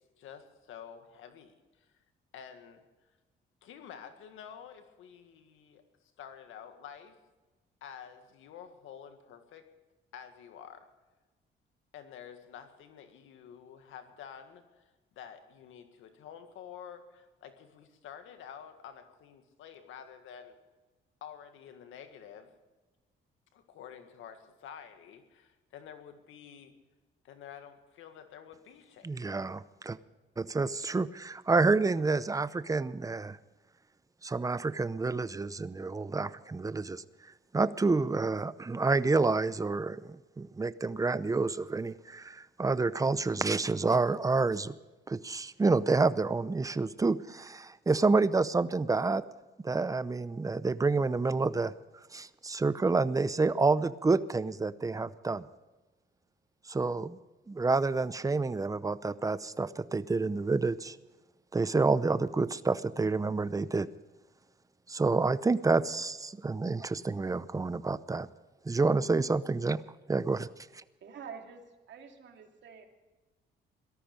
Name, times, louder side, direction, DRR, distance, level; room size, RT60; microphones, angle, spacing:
voice 1, 0.2-1.9 2.3-2.8 3.6-5.8 6.2-7.2 7.8-9.7 10.1-10.9 11.9-20.6 21.2-22.5 23.5-26.8 27.2-29.1, left 8 dB, 85° left, 7 dB, 1.9 m, -49 dB
voice 2, 29.0-30.0 30.4-33.4 34.2-37.0 37.5-44.7 45.1-49.2 49.6-51.7 52.1-55.4 56.7-57.2 57.5-61.0 61.5-63.9 64.9-68.3 68.6-69.8 70.1-70.5 70.7-70.8, right 3 dB, 15° right, 15 dB, 0.7 m, -28 dB
voice 3, 71.0-72.9, right 6 dB, 65° right, 3 dB, 2.5 m, -47 dB
17.5 x 13.5 x 5.2 m, 1.2 s
cardioid pair, 90°, 20 cm